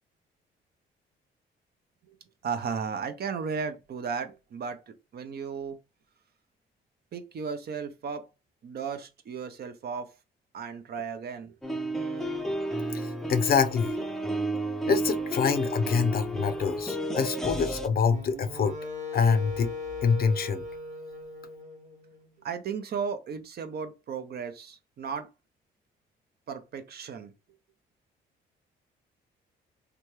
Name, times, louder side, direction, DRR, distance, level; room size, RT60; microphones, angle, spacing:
voice 1, 2.4-5.8 7.1-8.3 8.6-10.1 10.5-11.5 22.4-25.3 26.5-27.3, right 6 dB, 55° right, 0.6 m, -35 dB
sound 1, 11.6-17.9, right 1 dB, ahead, 0.5 m, -32 dB
voice 2, 12.9-14.0 14.9-18.8 19.1-19.7 20.0-20.6, left 6 dB, 50° left, 0.5 m, -26 dB
Wind instrument woodwind instrument, 18.1-22.3, left 3 dB, 35° right, 1.0 m, -39 dB
2.9 x 2.3 x 3.1 m
cardioid pair, 90°, 20 cm